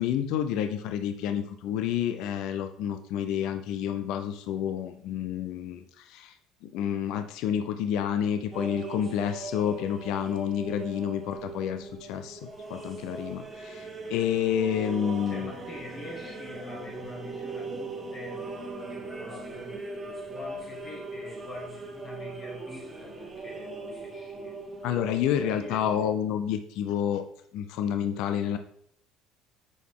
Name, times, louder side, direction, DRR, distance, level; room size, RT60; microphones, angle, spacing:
voice 1, 0.0-6.3 6.6-12.4 12.7-15.5 24.8-27.2 27.5-28.6, left 9 dB, 75° left, 8 dB, 0.5 m, -29 dB
sound 1, 8.5-26.1, right 3 dB, 10° right, 1.5 m, -40 dB
voice 2, 15.1-24.6 25.4-26.0, left 1 dB, 40° left, -2 dB, 2.1 m, -45 dB
6.1 x 4.7 x 3.7 m, 0.66 s
supercardioid pair, 95°, 0 cm